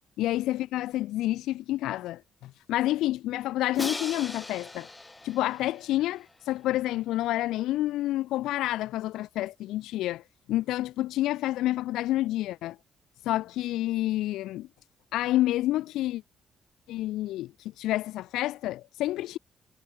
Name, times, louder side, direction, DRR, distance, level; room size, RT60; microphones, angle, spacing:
voice 1, 0.2-4.9 5.2-10.2 10.5-12.8 13.2-14.7 15.1-16.2 16.9-19.4, left 15 dB, 90° left, 0.4 m, -29 dB
Crash cymbal, 3.7-6.7, left 2 dB, 15° left, 0.9 m, -39 dB
cardioid pair, 90°, 0 cm